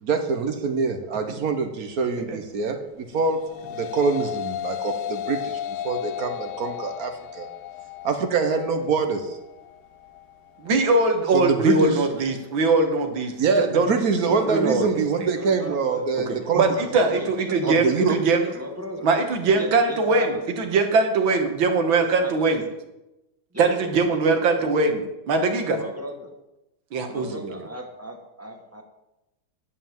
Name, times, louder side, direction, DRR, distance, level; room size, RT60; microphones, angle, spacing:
voice 1, 0.0-3.4 3.7-5.6 5.8-7.5 8.0-9.4 11.3-12.0 13.4-16.7 17.6-18.2, right 4 dB, 55° right, 7 dB, 1.3 m, -24 dB
sound 1, 3.2-12.3, left 10 dB, 75° left, 1.1 m, -35 dB
voice 2, 10.6-13.9 14.5-15.3 16.3-18.5 19.0-22.6 23.6-25.8 26.9-27.4, right 3 dB, 80° right, 5 dB, 2.0 m, -22 dB
voice 3, 15.3-16.0 16.7-17.8 18.3-19.1 19.5-20.5 21.9-22.4 23.5-24.5 25.7-26.3 27.1-28.8, equal, 10° right, 3 dB, 0.9 m, -38 dB
10.5 x 5.6 x 7.2 m, 0.96 s
omnidirectional pair, 2.1 m